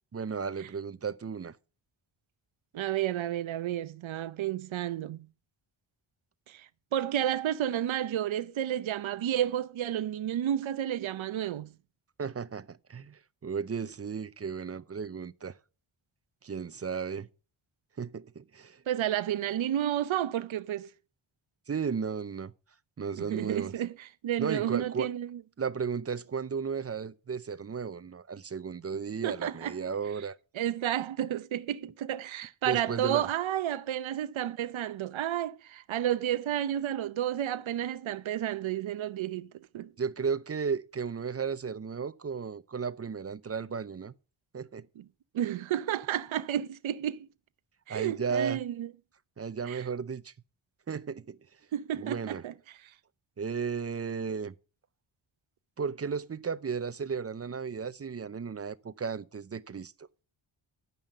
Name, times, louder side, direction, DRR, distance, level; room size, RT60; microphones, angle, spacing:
voice 1, 0.1-1.6 12.2-15.6 16.4-17.3 18.0-18.8 21.7-22.5 23.0-23.7 24.4-25.1 25.6-30.4 32.6-33.3 40.0-44.1 44.5-44.9 47.9-48.6 49.4-50.3 50.9-51.4 51.9-52.4 53.4-54.5 55.8-60.1, right 6 dB, 30° right, 0.6 m, -34 dB
voice 2, 2.7-5.3 6.5-11.7 18.9-20.9 23.1-25.4 29.2-29.8 30.5-39.5 39.7-39.9 45.0-45.1 45.3-47.3 47.9-48.9 49.7-49.9 51.7-52.5, right 11 dB, 70° right, 0.8 m, -31 dB
10.5 x 5.6 x 6.6 m
cardioid pair, 80°, 49 cm